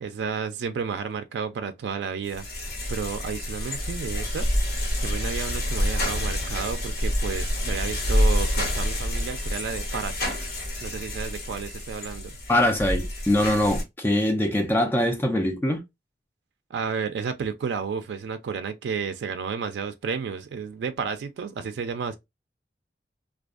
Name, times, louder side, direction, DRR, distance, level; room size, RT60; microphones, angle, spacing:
voice 1, 0.0-2.5 2.9-4.5 5.0-10.4 10.8-12.4 16.7-22.2, right 6 dB, 85° right, 0.3 m, -32 dB
sound 1, 2.3-13.8, left 1 dB, 60° left, 1.0 m, -27 dB
voice 2, 12.5-15.8, left 1 dB, 10° left, 0.4 m, -23 dB
2.5 x 2.3 x 2.3 m
head